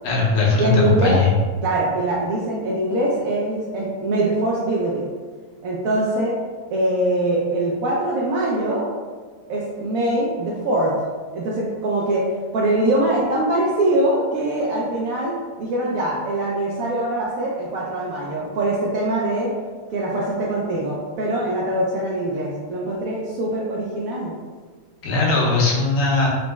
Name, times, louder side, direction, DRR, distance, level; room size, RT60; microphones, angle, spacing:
voice 1, 0.0-1.3 25.0-26.3, left 3 dB, 75° left, -5 dB, 1.5 m, -19 dB
voice 2, 0.6-1.2 1.6-5.1 5.6-6.4 6.7-8.9 9.5-11.0 11.3-19.6 19.9-24.4, right 1 dB, 90° right, -4 dB, 0.7 m, -23 dB
4.0 x 2.0 x 3.3 m, 1.5 s
omnidirectional pair, 2.1 m